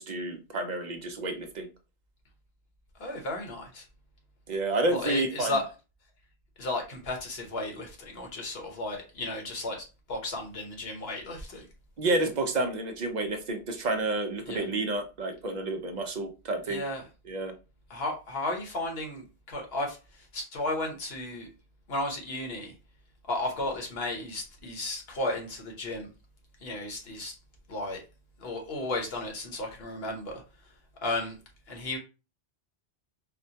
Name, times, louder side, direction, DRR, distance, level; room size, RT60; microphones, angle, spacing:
voice 1, 0.0-1.7 4.5-5.6 12.0-16.8 17.3-17.5, right 2 dB, 50° right, 6 dB, 0.6 m, -30 dB
voice 2, 3.0-3.8 4.9-5.7 6.6-11.7 14.5-14.6 16.7-17.0 17.9-21.5 21.9-22.7 23.3-26.1 26.6-27.4 27.7-28.0 28.4-30.4 31.0-31.4 31.7-32.0, left 2 dB, 70° left, 2 dB, 1.2 m, -34 dB
4.2 x 2.1 x 2.7 m, 0.31 s
omnidirectional pair, 1.1 m